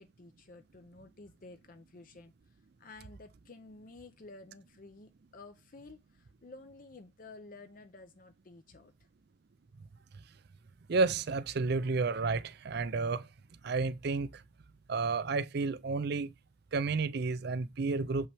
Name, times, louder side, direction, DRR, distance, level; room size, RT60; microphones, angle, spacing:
voice 1, 0.0-9.1, left 3 dB, 40° left, 0.5 m, -53 dB
voice 2, 10.9-13.3 13.6-14.4 14.9-16.3 16.7-18.3, right 4 dB, 50° right, 0.4 m, -31 dB
7.2 x 5.5 x 3.4 m
head